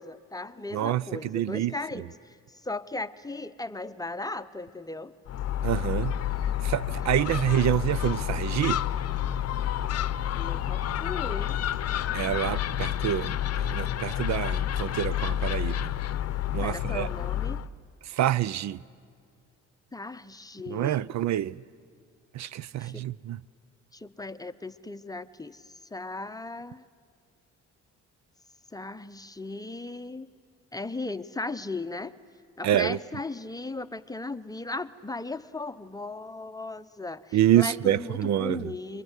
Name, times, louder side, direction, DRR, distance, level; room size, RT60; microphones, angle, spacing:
voice 1, 0.0-5.1 7.1-7.2 10.3-11.6 16.6-17.6 19.9-21.1 22.8-23.1 23.9-26.8 28.7-30.3 30.7-32.1 32.6-39.0, left 2 dB, 10° left, 0.8 m, -37 dB
voice 2, 0.7-1.7 5.6-6.1 6.6-8.8 12.1-15.9 16.5-17.1 18.1-18.8 20.7-21.6 22.3-23.4 32.6-33.0 37.3-38.7, right 12 dB, 65° right, 0.6 m, -27 dB
Gull seagull, 5.3-17.7, left 11 dB, 55° left, 0.7 m, -29 dB
sound 1, 7.2-12.5, right 1 dB, 15° right, 2.3 m, -51 dB
27.0 x 23.0 x 8.2 m
cardioid pair, 90°, 30 cm